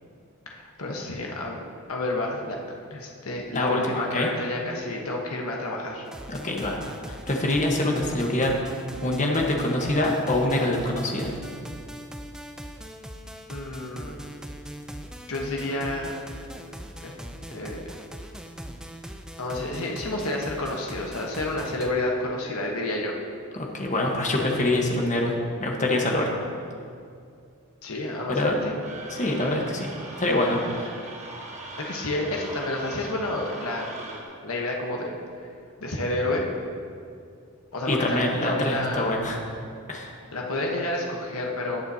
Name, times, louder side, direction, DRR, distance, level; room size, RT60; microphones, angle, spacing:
voice 1, 0.5-1.6 1.9-6.0 13.5-14.2 15.3-16.1 17.0-17.1 17.5-17.8 19.4-23.2 27.8-28.7 31.8-34.0 34.4-35.2 35.8-36.4 37.7-39.1 40.3-41.8, left 2 dB, 65° left, -1 dB, 1.1 m, -30 dB
voice 2, 3.5-4.3 6.3-6.8 7.0-8.5 9.0-11.3 23.6-26.3 28.3-28.6 29.1-29.9 30.2-30.9 37.9-39.4 39.9-40.1, left 1 dB, 35° left, 0 dB, 1.2 m, -25 dB
sound 1, 6.0-21.9, equal, 5° right, 0.4 m, -41 dB
sound 2, 28.8-34.2, right 2 dB, 30° right, 1.2 m, -40 dB
19.0 x 6.9 x 2.8 m, 2.4 s
head